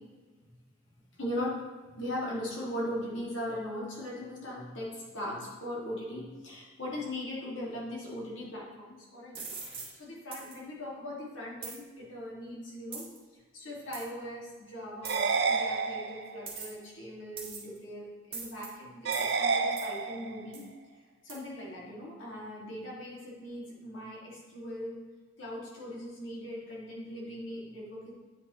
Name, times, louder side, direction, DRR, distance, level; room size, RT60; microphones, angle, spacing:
voice 1, 1.2-9.5 9.7-13.1 13.5-20.7 21.2-25.0 25.4-28.1, left 1 dB, 90° left, -4 dB, 2.2 m, -39 dB
sound 1, 9.3-9.9 10.3-10.6 11.6-11.8 12.9-13.2 13.9-14.0 15.0-15.4 16.5-16.9 17.4-17.8 18.3-18.7 19.1-19.3 19.8-19.9 20.5-20.7 21.3-21.4, right 4 dB, 30° right, 1.8 m, -41 dB
sound 2, 15.0-16.5 19.0-20.5, right 4 dB, 60° right, 0.6 m, -29 dB
9.1 x 5.4 x 3.1 m, 1.4 s
head